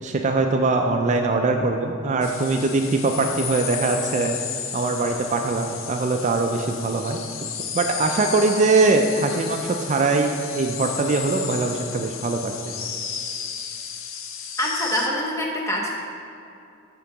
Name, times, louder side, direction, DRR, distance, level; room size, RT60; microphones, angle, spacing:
voice 1, 0.0-4.4 4.7-7.2 7.7-12.5, right 3 dB, 35° right, 4 dB, 0.3 m, -22 dB
sound 1, 2.2-15.1, left 8 dB, 85° left, 0.6 m, -33 dB
voice 2, 14.6-15.9, equal, 15° left, -2 dB, 0.9 m, -25 dB
7.8 x 3.8 x 5.9 m, 2.6 s
head